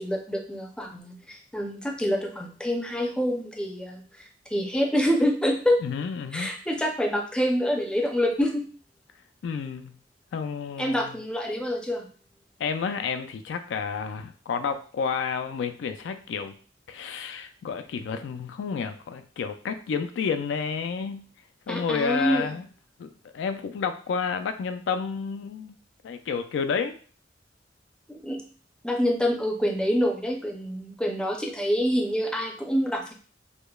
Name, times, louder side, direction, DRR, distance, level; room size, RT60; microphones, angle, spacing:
voice 1, 0.0-4.0 4.5-5.8 6.3-8.6 10.8-12.1 21.7-22.5 28.1-28.4 28.8-33.1, equal, 5° left, 1 dB, 0.5 m, -26 dB
voice 2, 5.8-6.5 9.4-9.9 10.3-11.2 12.6-16.6 16.9-21.3 21.7-22.7 23.0-23.1 23.3-25.8 26.0-26.9, left 6 dB, 75° left, 8 dB, 0.3 m, -30 dB
4.9 x 2.0 x 2.3 m, 0.41 s
head